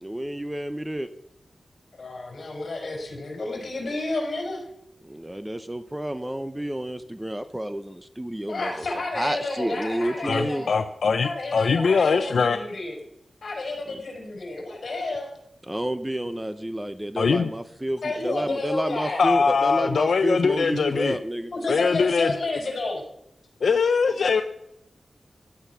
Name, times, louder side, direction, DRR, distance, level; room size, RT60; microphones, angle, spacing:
voice 1, 0.0-1.1 5.0-8.7 9.1-10.6 15.7-21.5, right 1 dB, 10° right, 10 dB, 0.7 m, -30 dB
voice 2, 1.9-4.6 8.5-10.8 11.2-12.9 13.4-15.3 18.0-19.2 21.5-23.0, left 2 dB, 55° left, 1 dB, 5.4 m, -31 dB
voice 3, 10.2-12.6 17.2-17.5 19.2-21.2 21.7-22.4 23.6-24.4, left 5 dB, 80° left, 8 dB, 0.7 m, -22 dB
16.0 x 11.0 x 6.0 m, 0.81 s
wide cardioid pair, 115°, 0 cm